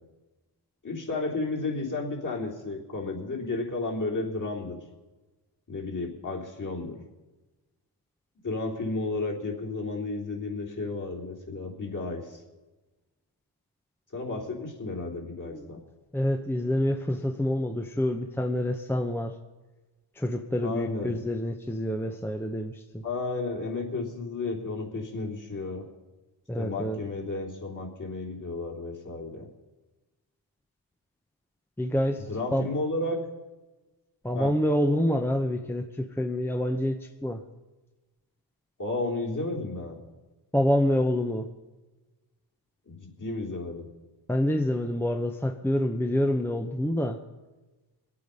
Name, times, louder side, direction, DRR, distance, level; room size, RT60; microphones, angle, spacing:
voice 1, 0.8-4.8 5.7-7.0 8.4-12.4 14.1-15.8 20.6-21.1 23.0-25.9 26.6-29.5 32.3-33.2 34.4-34.6 38.8-40.0 42.9-43.9, left 3 dB, 40° left, -1 dB, 3.6 m, -32 dB
voice 2, 16.1-19.4 20.2-23.0 26.5-27.0 31.8-32.7 34.2-37.4 40.5-41.5 44.3-47.2, left 1 dB, 5° left, 5 dB, 0.9 m, -27 dB
22.5 x 8.6 x 5.4 m, 1.2 s
cardioid pair, 80°, 45 cm